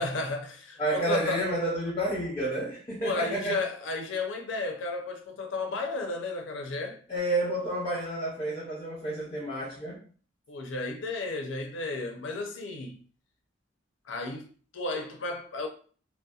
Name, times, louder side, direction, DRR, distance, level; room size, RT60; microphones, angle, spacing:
voice 1, 0.0-1.4 3.0-7.0 10.5-13.0 14.1-14.5 14.7-15.7, left 3 dB, 80° left, 0.5 m, -33 dB
voice 2, 0.8-3.6 7.1-10.0, right 1 dB, 25° left, 0.6 m, -30 dB
2.7 x 2.0 x 2.3 m
head